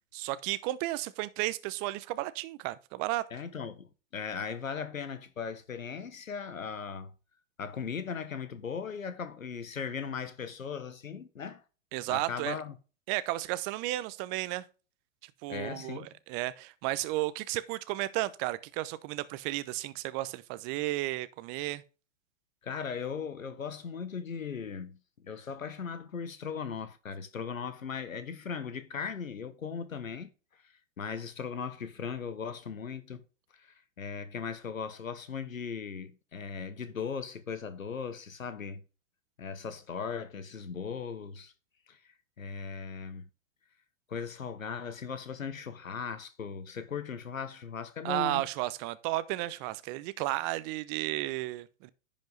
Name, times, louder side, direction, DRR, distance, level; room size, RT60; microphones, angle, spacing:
voice 1, 0.1-3.2 11.9-12.6 13.1-14.6 15.4-21.8 48.0-51.9, right 17 dB, 35° right, 0.8 m, -33 dB
voice 2, 3.3-7.1 7.6-11.6 12.1-12.8 15.5-16.1 22.6-25.0 25.2-30.3 30.6-33.2 33.5-38.8 39.4-41.5 41.9-43.3 44.1-48.4, left 6 dB, 85° left, 1.2 m, -38 dB
10.5 x 5.3 x 4.0 m
hypercardioid pair, 110°, 39 cm